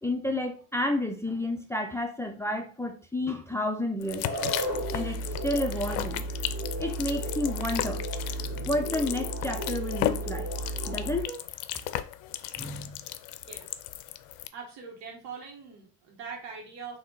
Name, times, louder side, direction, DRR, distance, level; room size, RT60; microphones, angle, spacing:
voice 1, 0.0-4.3 4.9-6.3 6.8-8.1 8.6-10.5 10.9-11.4 12.6-13.0, left 1 dB, 5° left, 3 dB, 0.6 m, -31 dB
sound 1, 4.0-14.5, left 13 dB, 75° left, 0.5 m, -35 dB
sound 2, 4.2-11.3, right 1 dB, 30° right, 2.3 m, -33 dB
voice 2, 13.5-13.8 14.5-17.0, right 5 dB, 70° right, 1 dB, 1.7 m, -42 dB
3.8 x 3.0 x 3.9 m, 0.38 s
hypercardioid pair, 80°, 45 cm